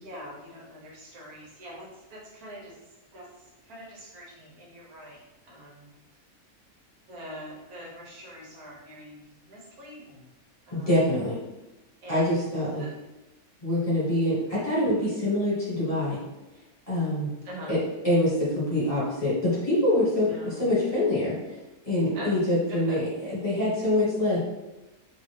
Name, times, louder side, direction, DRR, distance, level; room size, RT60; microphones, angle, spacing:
voice 1, 0.0-2.7 3.1-3.3 3.7-5.9 7.1-10.3 10.7-10.9 12.0-12.3 12.8-12.9 17.4-17.8 20.2-20.7 22.1-22.4 22.7-23.0, equal, 85° right, -3 dB, 1.4 m, -43 dB
voice 2, 10.7-11.4 12.1-12.8 13.6-16.2 16.9-17.3 17.7-17.8 18.0-21.3 21.8-24.4, left 1 dB, 25° left, -9 dB, 1.3 m, -25 dB
2.9 x 2.5 x 3.3 m, 1.0 s
omnidirectional pair, 1.5 m